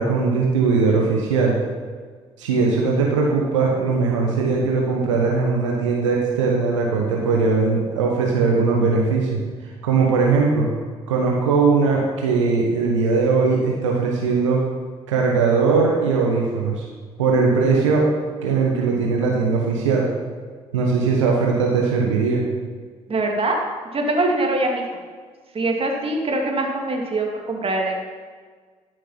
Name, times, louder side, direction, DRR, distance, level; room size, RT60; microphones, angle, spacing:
voice 1, 0.0-1.6 2.4-9.4 9.8-10.7 11.1-14.6 15.1-16.8 17.2-18.1 18.4-20.1 20.7-22.4, right 4 dB, 85° right, -1 dB, 1.1 m, -19 dB
voice 2, 23.1-23.6 23.9-24.8 25.5-27.9, right 2 dB, 40° right, 1 dB, 2.5 m, -23 dB
12.5 x 6.5 x 5.8 m, 1.5 s
hypercardioid pair, 45°, 15 cm